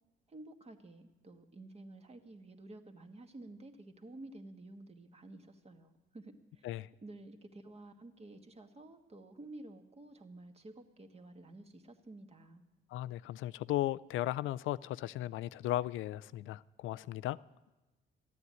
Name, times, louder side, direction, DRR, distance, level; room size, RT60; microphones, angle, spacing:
voice 1, 0.3-6.7 7.0-12.6, right 2 dB, 30° right, 1.6 m, -52 dB
voice 2, 12.9-17.4, left 14 dB, 80° left, 0.4 m, -36 dB
13.0 x 9.4 x 9.6 m
cardioid pair, 90°, 20 cm